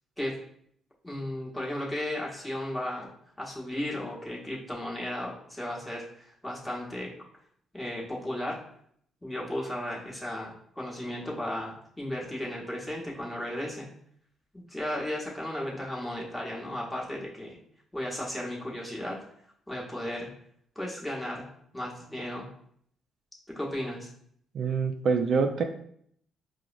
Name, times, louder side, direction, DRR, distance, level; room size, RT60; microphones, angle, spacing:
voice 1, 1.0-3.1 3.4-7.1 7.7-8.6 9.2-13.9 14.5-17.6 17.9-19.2 19.7-20.3 20.7-21.5 21.7-22.5 23.5-24.1, left 1 dB, 10° left, -4 dB, 1.1 m, -35 dB
voice 2, 24.5-25.6, right 5 dB, 65° right, 5 dB, 0.3 m, -25 dB
4.7 x 2.0 x 2.5 m, 0.65 s
cardioid pair, 90°, 0 cm